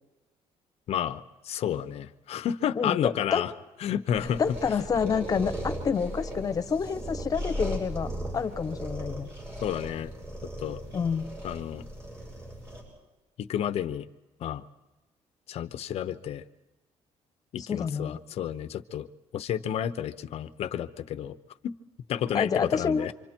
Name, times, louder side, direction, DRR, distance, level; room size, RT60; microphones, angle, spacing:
voice 1, 0.9-3.5 3.8-4.4 9.6-10.1 10.6-10.8 11.4-11.8 13.4-14.1 14.4-14.6 15.5-16.4 17.5-19.1 19.3-21.3 21.6-21.7 22.1-23.1, left 10 dB, 60° left, 12 dB, 0.9 m, -31 dB
voice 2, 2.7-3.4 4.4-9.3 10.9-11.3 17.7-18.2 22.3-23.1, left 6 dB, 30° left, 10 dB, 1.2 m, -28 dB
sound 1, 4.1-12.8, right 1 dB, 20° right, 7.7 m, -37 dB
27.5 x 25.5 x 4.5 m, 1.1 s
cardioid pair, 140°, 12 cm